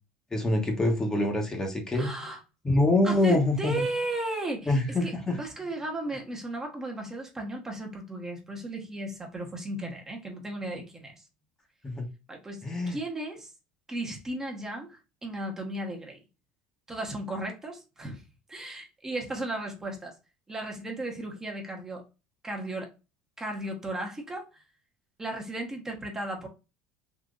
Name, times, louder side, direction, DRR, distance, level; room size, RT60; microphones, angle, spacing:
voice 1, 0.3-2.1 2.6-3.8 4.7-5.4 11.8-12.1 12.6-13.0, left 2 dB, 20° left, 1.0 m, -25 dB
voice 2, 1.9-2.4 3.0-11.1 12.3-13.5 13.9-16.2 16.9-18.2 18.5-20.1 20.5-22.0 22.4-22.9 23.4-24.6 25.2-26.5, right 1 dB, 15° right, 1.0 m, -35 dB
3.8 x 2.6 x 2.4 m
supercardioid pair, 105°, 3 cm